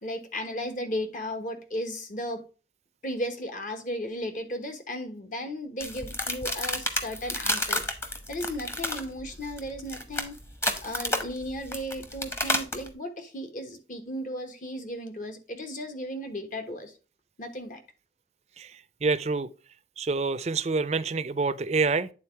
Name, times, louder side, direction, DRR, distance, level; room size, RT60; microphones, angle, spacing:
voice 1, 0.0-2.4 3.0-7.8 8.3-10.4 10.8-16.9 17.4-17.8, equal, 45° left, 1.2 m, -35 dB
sound 1, 5.8-12.9, left 1 dB, 15° left, 0.9 m, -30 dB
voice 2, 19.0-19.5 20.0-22.1, right 4 dB, 35° right, 0.4 m, -27 dB
9.0 x 3.9 x 4.5 m
head